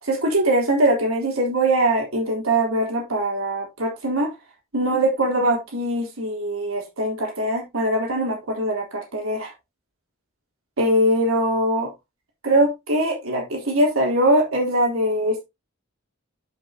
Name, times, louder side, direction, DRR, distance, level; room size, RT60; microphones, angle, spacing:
voice 1, 0.0-4.3 4.7-9.5 10.8-11.9 12.4-15.4, right 1 dB, 85° right, -1 dB, 3.6 m, -22 dB
11.0 x 5.6 x 2.9 m, 0.22 s
head